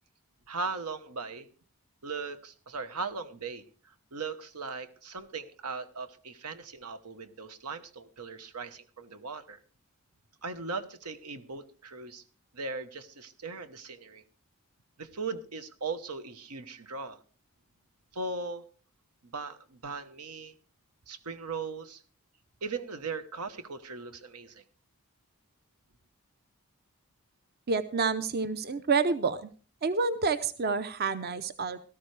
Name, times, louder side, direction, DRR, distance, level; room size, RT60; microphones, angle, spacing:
voice 1, 0.5-1.5 2.0-3.6 4.1-9.6 10.4-12.2 12.5-14.2 15.0-17.2 18.1-18.6 19.2-20.5 21.1-22.0 22.6-24.6, right 4 dB, 90° right, 11 dB, 1.1 m, -38 dB
voice 2, 27.7-29.5 29.8-31.8, right 4 dB, 45° right, 13 dB, 0.6 m, -28 dB
17.5 x 13.0 x 3.3 m, 0.37 s
head